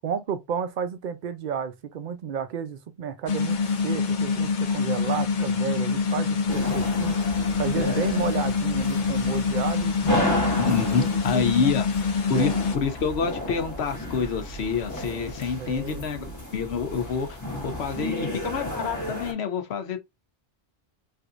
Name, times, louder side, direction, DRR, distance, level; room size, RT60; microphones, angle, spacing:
voice 1, 0.0-10.0 10.5-11.7 12.3-12.5 15.5-16.0, right 7 dB, 55° right, 0.7 m, -32 dB
sound 1, 3.3-12.8, left 5 dB, 50° left, 0.7 m, -25 dB
sound 2, 6.5-19.3, equal, 15° left, 1.0 m, -32 dB
voice 2, 10.7-11.9 12.3-16.2 16.5-17.4 17.6-20.0, left 6 dB, 70° left, 1.0 m, -27 dB
3.3 x 2.7 x 2.5 m
omnidirectional pair, 1.1 m